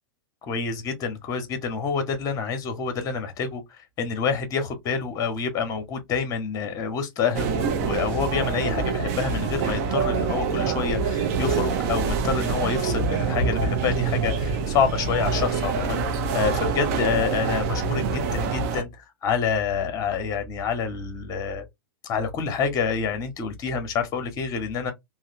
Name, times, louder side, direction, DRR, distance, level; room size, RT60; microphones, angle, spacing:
voice 1, 0.4-21.7 22.0-24.9, left 5 dB, 30° left, 0.9 m, -27 dB
sound 1, 7.3-18.8, right 5 dB, 45° right, 0.6 m, -25 dB
3.2 x 2.0 x 2.8 m
figure-of-eight pair, 95°, 12 cm